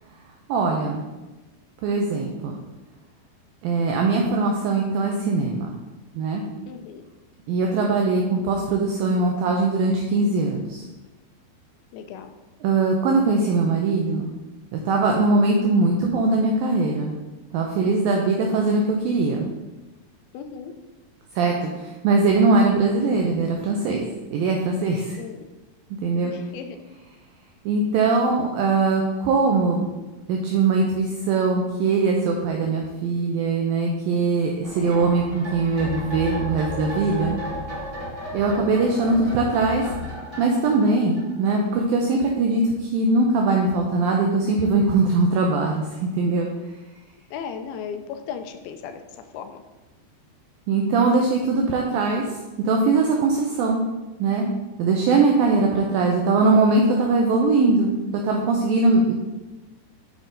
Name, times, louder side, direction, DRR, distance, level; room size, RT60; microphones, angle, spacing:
voice 1, 0.5-1.0 1.8-2.6 3.6-5.7 6.2-6.4 7.5-10.8 12.6-14.3 14.7-17.1 17.5-19.5 21.4-25.2 26.0-26.3 27.7-29.9 30.3-37.4 38.3-39.9 40.4-46.5 50.7-53.8 54.2-54.5 54.8-57.9 58.2-59.1, right 3 dB, 85° right, 1 dB, 2.0 m, -21 dB
voice 2, 6.7-7.0 11.9-12.4 20.3-20.7 25.2-25.4 26.2-26.8 37.3-37.4 47.3-49.0 49.3-49.6, left 7 dB, 85° left, 7 dB, 2.2 m, -36 dB
sound 1, 34.6-42.0 42.3-42.4, left 1 dB, 25° right, 1.0 m, -34 dB
8.2 x 5.2 x 3.8 m, 1.1 s
omnidirectional pair, 4.9 m